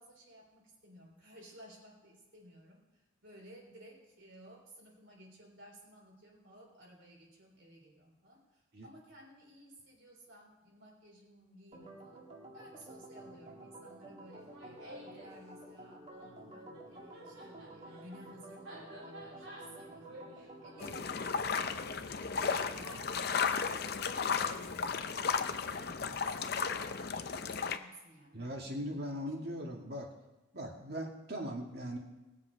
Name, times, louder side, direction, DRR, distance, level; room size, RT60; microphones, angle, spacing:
voice 1, 0.0-2.8 3.2-12.2 12.5-14.5 14.8-23.4 23.8-26.6 27.2-29.5, equal, 70° right, -1 dB, 3.7 m, -57 dB
Organ, 11.7-21.1, right 1 dB, 30° right, 2.0 m, -51 dB
Laughter, 14.3-15.4 16.6-23.9, equal, 90° right, 4.8 m, -53 dB
sound 1, 20.8-27.8, left 5 dB, 50° left, 0.6 m, -34 dB
voice 2, 28.3-30.1 30.5-32.0, equal, 50° right, 0 dB, 2.2 m, -39 dB
19.0 x 7.5 x 5.3 m, 1.1 s
head